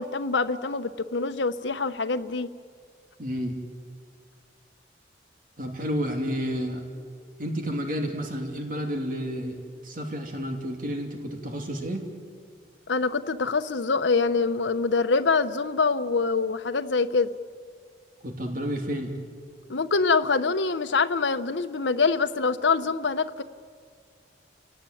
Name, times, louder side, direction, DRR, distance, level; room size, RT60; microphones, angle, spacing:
voice 1, 0.0-2.5 12.9-17.3 19.7-23.4, left 4 dB, 85° left, 10 dB, 0.9 m, -25 dB
voice 2, 3.2-3.6 5.6-6.8 7.4-9.6 9.8-12.0 18.2-19.1, equal, 50° right, 3 dB, 2.7 m, -30 dB
29.5 x 18.0 x 9.2 m, 2.1 s
head